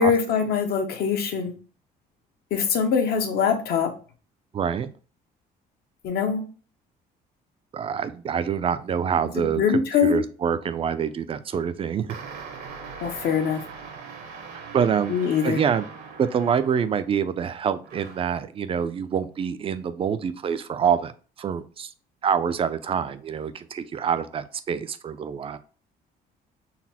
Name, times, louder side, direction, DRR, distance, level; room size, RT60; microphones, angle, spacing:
voice 1, 0.0-1.5 2.5-3.9 6.0-6.4 9.4-10.2 13.0-13.6 15.1-15.6, left 7 dB, 70° left, 5 dB, 0.9 m, -23 dB
voice 2, 4.5-4.9 7.7-12.2 14.7-15.2 15.4-15.9 16.2-21.1 21.4-21.9 22.2-25.6, right 7 dB, 35° right, 12 dB, 0.4 m, -26 dB
sound 1, 12.1-17.1 17.8-18.4, right 5 dB, 70° right, 0.9 m, -41 dB
4.1 x 2.0 x 4.1 m, 0.38 s
cardioid pair, 110°, 17 cm